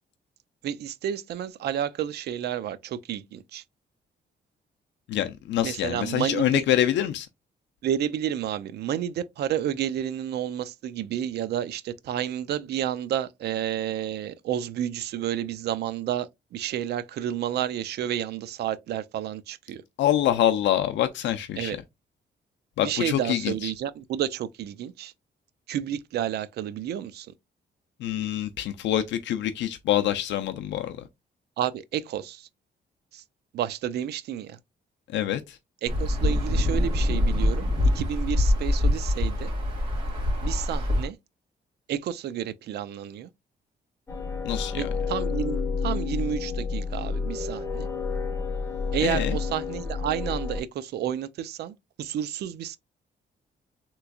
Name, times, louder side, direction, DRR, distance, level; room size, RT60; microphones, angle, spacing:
voice 1, 0.6-3.6 5.6-6.6 7.8-19.8 21.6-21.8 22.8-25.1 25.7-27.3 31.6-32.5 33.1-33.2 33.5-34.6 35.8-37.7 37.9-39.5 40.4-41.2 41.9-43.3 44.8-47.9 48.9-52.8, right 10 dB, 65° right, 0.4 m, -30 dB
voice 2, 5.1-7.3 20.0-21.8 22.8-23.7 28.0-31.0 35.1-35.6 44.4-44.8 49.0-49.4, left 11 dB, 85° left, 0.4 m, -25 dB
Insect / Thunder / Rain, 35.9-41.1, left 1 dB, 30° right, 2.0 m, -24 dB
sound 1, 44.1-50.6, left 4 dB, 15° left, 0.6 m, -30 dB
3.4 x 3.0 x 2.3 m
wide cardioid pair, 175°, 18 cm